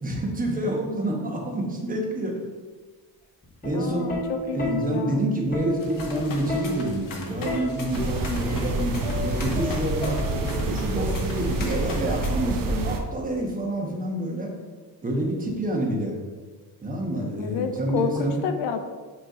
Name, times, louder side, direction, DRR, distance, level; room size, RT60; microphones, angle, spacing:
voice 1, 0.0-2.4 3.6-4.1 4.5-14.5 15.0-16.2 16.8-18.4, right 1 dB, 20° right, -1 dB, 1.2 m, -28 dB
Plucked string instrument, 3.4-10.7 11.7-12.1, left 1 dB, 20° left, 1.4 m, -34 dB
voice 2, 3.7-5.2 17.4-18.8, left 7 dB, 75° left, 7 dB, 0.8 m, -29 dB
sound 1, 5.8-12.3, left 3 dB, 50° left, 1.1 m, -38 dB
sound 2, 7.9-13.0, right 2 dB, 50° right, 0.8 m, -28 dB
6.5 x 3.3 x 5.5 m, 1.4 s
cardioid pair, 150°, 43 cm